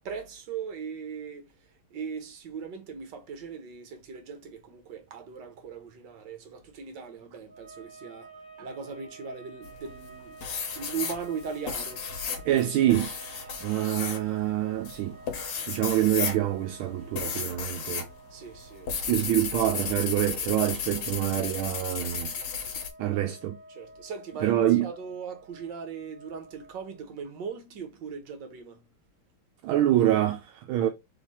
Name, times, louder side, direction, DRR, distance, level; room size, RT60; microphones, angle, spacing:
voice 1, 0.0-8.3 8.6-10.4 10.8-12.1 12.4-12.5 15.6-15.8 18.3-18.9 19.4-19.5 23.0-23.3 23.7-28.9, right 6 dB, 65° right, 1.6 m, -39 dB
sound 1, 7.4-27.1, right 4 dB, 5° left, 1.3 m, -50 dB
sound 2, 9.6-10.1 10.4-18.1 18.4-22.9, left 6 dB, 60° left, 1.5 m, -34 dB
voice 2, 12.5-15.2 15.7-18.1 19.1-22.3 23.0-23.6 24.4-24.9 29.6-30.9, right 13 dB, 80° right, 1.4 m, -26 dB
3.6 x 3.4 x 4.1 m
omnidirectional pair, 2.3 m